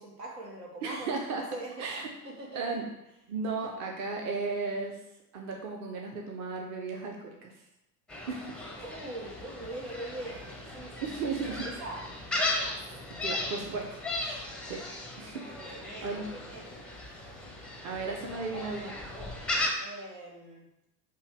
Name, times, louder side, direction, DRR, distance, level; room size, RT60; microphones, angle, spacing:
voice 1, 0.0-2.8 3.6-3.7 8.8-12.0 15.6-16.9 19.8-20.7, right 1 dB, 80° right, -3 dB, 1.4 m, -43 dB
voice 2, 0.8-1.4 1.8-2.1 2.5-2.9 3.3-5.0 5.3-7.5 8.3-8.4 11.0-11.6 13.2-14.4 14.7-14.8 15.2-15.4 16.0-16.3 17.8-19.1, right 4 dB, 35° right, 1 dB, 0.8 m, -35 dB
Gull seagull, 8.1-19.7, left 2 dB, ahead, 0.5 m, -36 dB
5.3 x 2.3 x 3.4 m, 0.88 s
figure-of-eight pair, 75°, 47 cm